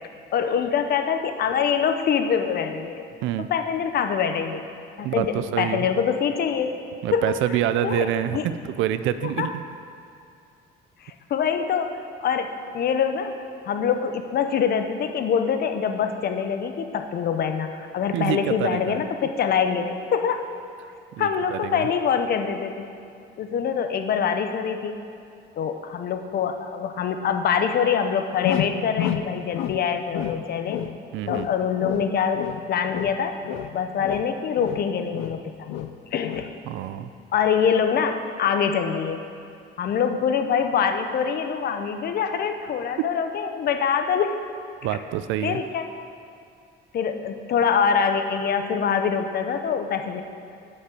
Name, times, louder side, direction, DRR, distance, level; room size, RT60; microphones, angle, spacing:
voice 1, 0.3-3.0 3.5-4.6 5.0-6.7 7.1-7.4 7.8-8.4 9.2-9.5 11.0-11.9 12.2-13.3 13.7-20.4 21.2-22.9 23.4-25.0 25.6-30.8 31.3-33.3 33.7-36.5 37.3-39.2 39.8-44.4 45.4-46.0 46.9-50.2, left 7 dB, 55° left, 7 dB, 0.7 m, -24 dB
voice 2, 5.0-5.9 7.0-9.6 18.1-19.0 21.1-21.9 31.1-31.5 36.7-37.1 44.8-45.6, right 11 dB, 85° right, 12 dB, 0.4 m, -27 dB
sound 1, 28.4-29.8 30.1-31.0 31.2-33.2 33.4-35.4 35.7-36.0 36.2-36.5, left 11 dB, 90° left, 0.4 m, -30 dB
8.2 x 5.4 x 6.0 m, 2.4 s
cardioid pair, 110°, 20 cm